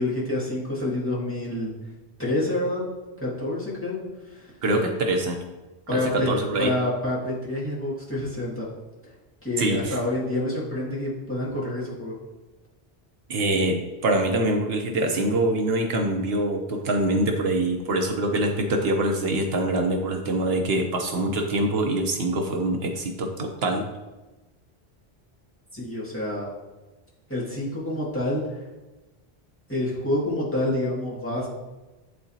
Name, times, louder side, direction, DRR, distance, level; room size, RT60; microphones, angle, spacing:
voice 1, 0.0-1.7 2.2-2.8 3.2-4.0 4.3-4.5 5.9-6.3 6.6-8.7 9.4-12.2 25.7-26.5 27.3-28.6 29.7-31.5, left 1 dB, 10° left, -8 dB, 1.9 m, -27 dB
voice 2, 4.6-5.4 5.9-6.7 9.6-10.0 13.3-23.9, right 1 dB, 70° right, 3 dB, 1.0 m, -24 dB
10.5 x 3.9 x 2.8 m, 1.1 s
omnidirectional pair, 1.1 m